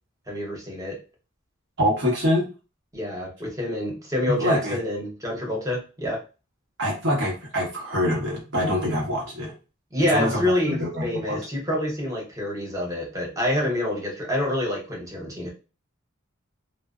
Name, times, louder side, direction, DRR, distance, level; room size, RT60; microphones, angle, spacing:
voice 1, 0.3-1.0 2.9-6.2 9.9-15.5, left 1 dB, 15° right, -1 dB, 0.7 m, -27 dB
voice 2, 1.8-2.5 4.3-4.8 6.8-9.5 10.1-11.4, left 1 dB, 60° right, -3 dB, 1.1 m, -25 dB
2.6 x 2.0 x 2.3 m, 0.32 s
head